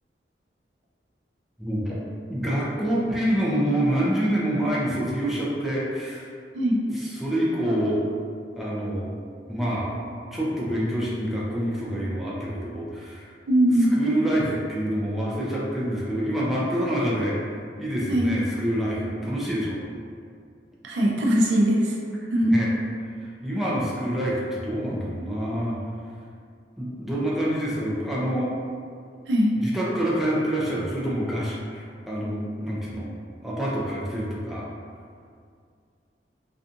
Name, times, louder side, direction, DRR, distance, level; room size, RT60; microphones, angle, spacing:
voice 1, 1.6-2.0 2.3-6.3 6.9-8.0 8.6-9.1 9.5-9.9 10.3-13.3 13.9-19.8 22.5-22.7 23.2-25.8 26.8-28.6 29.6-33.1 33.4-34.7, right 1 dB, ahead, -7 dB, 0.4 m, -27 dB
voice 2, 13.5-14.0 18.1-18.3 20.8-22.0 22.3-22.6 29.3-29.5, equal, 80° right, -2 dB, 0.4 m, -20 dB
2.6 x 2.4 x 2.4 m, 2.2 s
head